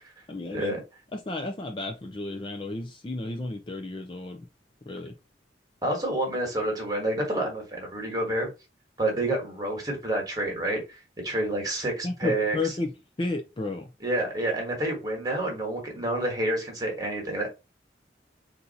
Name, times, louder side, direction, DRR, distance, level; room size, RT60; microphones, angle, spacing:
voice 1, 0.3-0.8 1.1-4.4 4.9-5.1 12.0-12.9 13.2-13.9, left 2 dB, 30° left, 0.5 m, -32 dB
voice 2, 5.8-8.5 9.0-12.7 14.0-17.5, right 1 dB, 20° right, 1.5 m, -28 dB
4.2 x 2.7 x 4.1 m
head